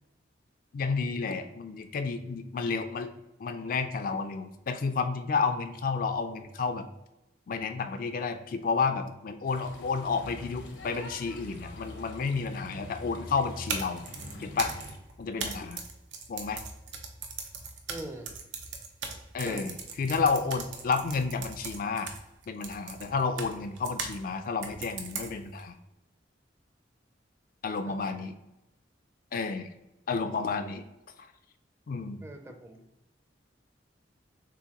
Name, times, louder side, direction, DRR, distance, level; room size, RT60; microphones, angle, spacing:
voice 1, 0.7-3.1 3.4-6.9 7.5-14.0 14.4-14.7 15.2-15.8 16.3-16.6 19.3-19.7 20.0-22.1 22.5-25.7 27.6-28.3 29.3-29.7 30.1-30.9 31.9-32.2, left 4 dB, 50° left, 8 dB, 0.3 m, -31 dB
sound 1, 9.5-15.0, left 1 dB, 85° left, 0.8 m, -44 dB
sound 2, 13.5-24.2 24.6-25.6, right 5 dB, 90° right, 0.7 m, -39 dB
voice 2, 17.9-18.3 19.5-19.8 27.9-28.3 32.2-32.9, right 1 dB, 15° right, 4 dB, 0.4 m, -42 dB
6.7 x 2.6 x 2.9 m, 0.94 s
head